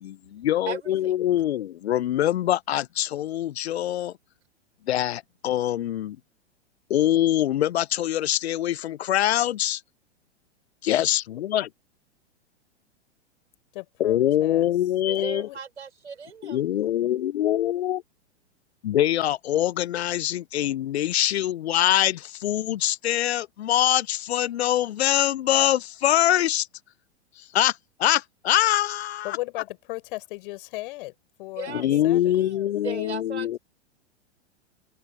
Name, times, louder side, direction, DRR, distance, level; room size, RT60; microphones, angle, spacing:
voice 1, 0.0-4.1 4.9-6.2 6.9-9.8 10.8-11.7 14.0-15.5 16.4-18.0 18.8-26.7 27.4-29.3 31.7-33.6, left 12 dB, 70° left, 0.5 m, -24 dB
voice 2, 0.7-1.1 15.1-16.6 31.6-33.6, right 6 dB, 80° right, 4.7 m, -38 dB
voice 3, 13.7-14.7 15.1-15.6 29.2-32.6, left 21 dB, 50° left, 4.2 m, -37 dB
open air
figure-of-eight pair, 100°, 34 cm